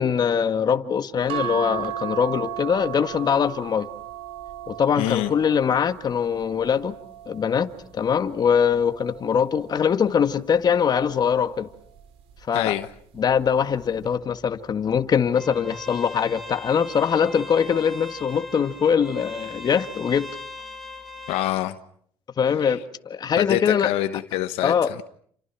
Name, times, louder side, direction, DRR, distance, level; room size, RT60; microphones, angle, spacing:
voice 1, 0.0-3.9 4.7-7.0 7.3-11.7 12.5-12.8 13.2-20.3 22.4-23.9 24.6-24.9, left 7 dB, 45° left, 1.9 m, -22 dB
sound 1, 1.3-7.9 8.6-10.0 11.2-11.6 12.0-12.1, right 12 dB, 80° right, 5.1 m, -36 dB
voice 2, 5.0-5.3 12.5-12.9 21.3-21.8 22.6-22.8 23.4-25.0, left 15 dB, 85° left, 1.1 m, -26 dB
sound 2, 13.2-21.5, left 2 dB, ahead, 5.2 m, -41 dB
29.5 x 27.5 x 6.0 m
supercardioid pair, 85°, 10 cm